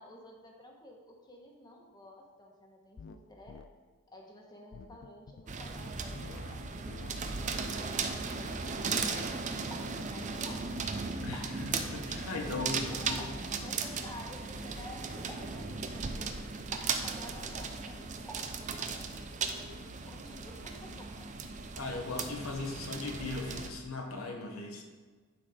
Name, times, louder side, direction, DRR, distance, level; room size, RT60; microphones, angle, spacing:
voice 1, 0.0-3.6 4.1-7.1 7.7-8.8 9.6-10.7 12.4-21.3 22.4-22.5, left 1 dB, 20° left, 0 dB, 1.2 m, -52 dB
sound 1, 3.0-3.2 3.5-3.7 4.7-5.5 6.1-6.6 6.9-9.3, left 5 dB, 55° left, 0.4 m, -50 dB
sound 2, 5.5-23.7, right 4 dB, 35° right, 0.5 m, -37 dB
sound 3, 9.7-10.6 11.3-12.2 13.2-14.0 15.3-16.2 16.7-17.5 18.3-19.3, right 1 dB, 5° right, 1.4 m, -53 dB
voice 2, 11.2-12.8 13.0-13.3 21.8-24.8, left 3 dB, 85° left, 2 dB, 1.1 m, -38 dB
11.0 x 4.2 x 4.8 m, 1.4 s
head